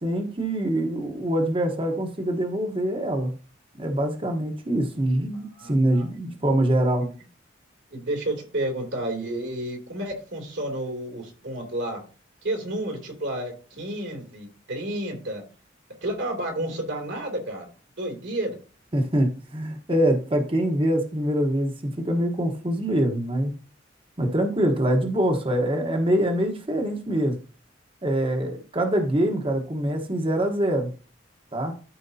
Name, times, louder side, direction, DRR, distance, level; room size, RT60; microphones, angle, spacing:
voice 1, 0.0-3.3 3.8-7.0 18.9-21.7 22.0-23.5 24.2-27.4 28.0-30.9 31.5-31.7, right 1 dB, 30° right, 4 dB, 1.1 m, -24 dB
voice 2, 5.3-6.0 7.0-7.1 7.9-12.0 12.4-15.4 16.0-17.7 18.0-18.6, right 1 dB, 70° right, 2 dB, 2.7 m, -31 dB
13.0 x 4.5 x 2.8 m, 0.36 s
head